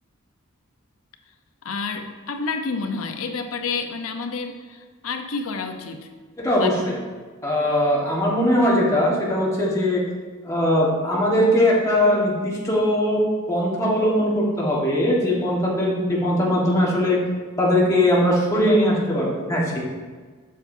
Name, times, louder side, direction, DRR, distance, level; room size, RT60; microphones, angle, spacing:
voice 1, 1.6-6.1 6.5-6.7, left 4 dB, 75° left, 5 dB, 0.7 m, -29 dB
voice 2, 6.4-6.9 7.4-10.0 10.4-13.2 13.5-17.2 17.6-19.8, left 1 dB, 15° left, -5 dB, 1.4 m, -20 dB
7.7 x 6.6 x 2.6 m, 1.5 s
head